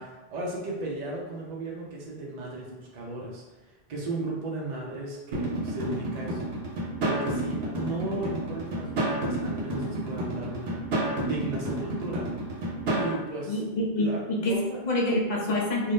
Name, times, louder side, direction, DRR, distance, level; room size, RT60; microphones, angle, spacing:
voice 1, 0.0-6.5 7.0-10.8 11.2-12.3 12.9-13.6 14.0-14.2 14.5-14.8 15.1-15.2, right 2 dB, 50° right, -3 dB, 0.6 m, -35 dB
sound 1, 5.3-13.1, right 1 dB, 75° right, 0.9 m, -30 dB
voice 2, 13.5-14.5 14.9-15.9, left 1 dB, 55° left, -1 dB, 0.6 m, -26 dB
2.5 x 2.3 x 3.4 m, 1.2 s
omnidirectional pair, 1.1 m